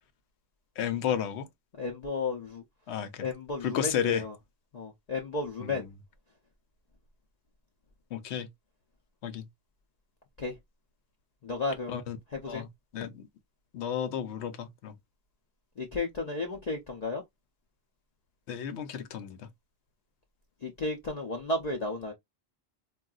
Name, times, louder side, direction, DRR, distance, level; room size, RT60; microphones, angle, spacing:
voice 1, 0.8-1.5 2.9-3.3 3.6-4.2 5.6-5.9 8.1-8.5 9.2-9.5 11.9-12.2 12.5-12.7 12.9-13.3 13.7-14.9 18.5-19.5, left 8 dB, 90° left, 0.9 m, -32 dB
voice 2, 1.8-2.6 3.2-4.3 4.7-5.9 10.4-10.5 11.4-12.0 12.3-12.6 15.8-17.2 20.6-22.1, left 2 dB, 50° left, 0.6 m, -33 dB
3.7 x 2.3 x 2.3 m
omnidirectional pair, 1.1 m